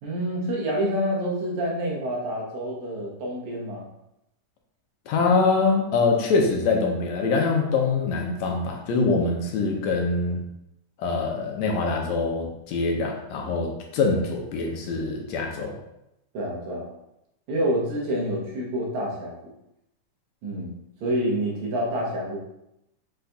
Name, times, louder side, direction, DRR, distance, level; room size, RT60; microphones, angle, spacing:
voice 1, 0.0-3.9 16.3-16.9 17.5-19.3 20.4-20.7 21.0-22.4, equal, 75° right, -2 dB, 2.3 m, -27 dB
voice 2, 5.1-10.4 11.0-15.7, left 4 dB, 80° left, 1 dB, 1.8 m, -24 dB
5.7 x 3.9 x 2.2 m, 0.84 s
omnidirectional pair, 3.4 m